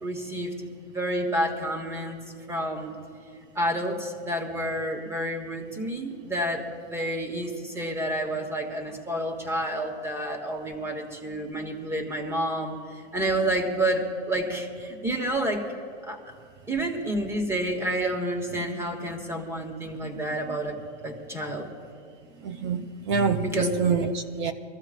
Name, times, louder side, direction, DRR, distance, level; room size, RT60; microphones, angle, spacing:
voice 1, 0.0-0.5 0.9-2.2 2.5-2.9 3.5-15.6 16.0-16.2 16.7-20.8 21.0-21.7 23.4-23.8, right 1 dB, 5° right, 3 dB, 1.2 m, -29 dB
voice 2, 22.4-24.5, right 6 dB, 25° right, 8 dB, 0.4 m, -27 dB
24.0 x 14.5 x 2.5 m, 2.2 s
supercardioid pair, 155°, 36 cm